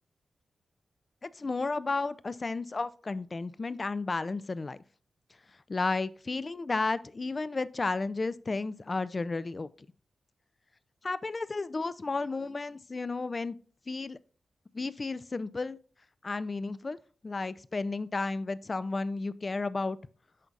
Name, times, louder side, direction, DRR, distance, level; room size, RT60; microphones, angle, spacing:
voice 1, 1.2-4.8 5.7-9.7 11.0-13.6 13.9-14.2 14.7-15.8 16.2-17.0 17.2-20.0, left 3 dB, 40° left, 16 dB, 0.4 m, -33 dB
10.5 x 3.9 x 2.4 m, 0.41 s
cardioid pair, 65°, 0 cm